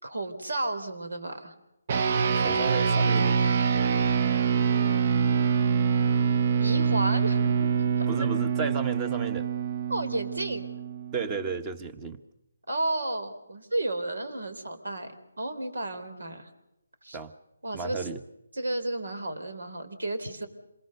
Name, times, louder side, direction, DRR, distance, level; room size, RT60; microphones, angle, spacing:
voice 1, 0.0-1.5 6.6-7.7 8.0-8.1 9.9-10.7 12.7-15.1 15.4-16.5 17.0-17.2 17.6-18.1 18.5-20.5, right 2 dB, 85° right, 8 dB, 4.0 m, -32 dB
sound 1, 1.9-11.5, right 6 dB, 40° right, 0.8 m, -25 dB
voice 2, 2.3-3.4 8.1-9.5 11.1-12.2 17.1-17.3 17.7-18.2, right 5 dB, 20° right, 11 dB, 1.3 m, -33 dB
27.0 x 22.0 x 6.7 m, 0.86 s
hypercardioid pair, 160°, 0 cm